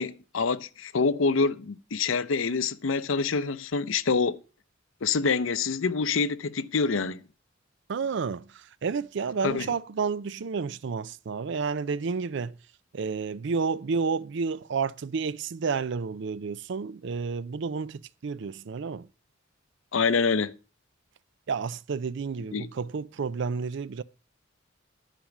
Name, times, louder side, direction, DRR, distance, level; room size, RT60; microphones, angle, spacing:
voice 1, 0.0-4.4 5.0-7.2 9.4-9.7 19.9-20.5 22.5-22.7, left 4 dB, 80° left, 0.7 m, -26 dB
voice 2, 7.9-12.5 12.9-19.1 21.5-24.0, right 5 dB, 65° right, 0.4 m, -30 dB
10.0 x 5.1 x 7.1 m
head